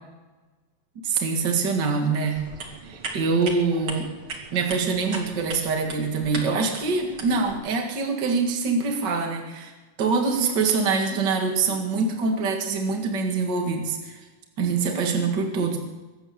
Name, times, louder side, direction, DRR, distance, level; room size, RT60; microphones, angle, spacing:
voice 1, 1.0-2.5 2.9-4.1 4.5-9.7 10.0-14.1 14.6-15.8, right 4 dB, 65° right, 3 dB, 1.0 m, -24 dB
sound 1, 2.3-7.5, right 3 dB, 45° right, 1.8 m, -38 dB
24.0 x 8.7 x 6.8 m, 1.2 s
omnidirectional pair, 5.4 m